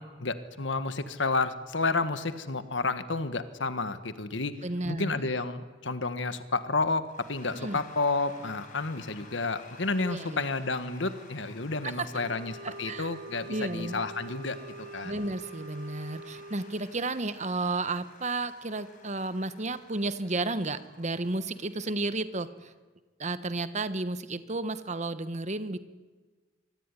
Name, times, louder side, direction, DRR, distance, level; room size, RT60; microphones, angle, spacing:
voice 1, 0.0-4.6 4.9-15.2, left 3 dB, 70° left, 11 dB, 1.6 m, -31 dB
voice 2, 4.6-5.3 7.5-7.8 10.0-10.4 11.8-12.1 12.6-13.1 13.5-14.0 15.0-22.7 23.2-25.8, right 2 dB, 40° right, 12 dB, 1.3 m, -32 dB
Cheering / Applause / Crowd, 7.1-22.7, left 3 dB, 45° left, 6.2 m, -54 dB
sound 1, 12.1-17.0, right 3 dB, 60° right, 1.3 m, -45 dB
25.0 x 24.0 x 9.9 m, 1.4 s
head